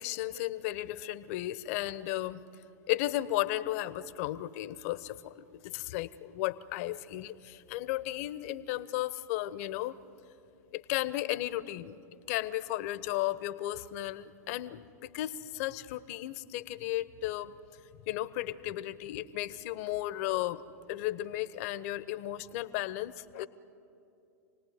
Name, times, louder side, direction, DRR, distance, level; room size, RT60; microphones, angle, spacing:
voice 1, 0.0-2.4 2.9-10.0 10.7-12.0 12.3-17.6 18.1-20.6 20.9-23.5, left 15 dB, 55° left, 15 dB, 1.0 m, -34 dB
28.0 x 19.0 x 9.4 m, 2.7 s
hypercardioid pair, 100°, 9 cm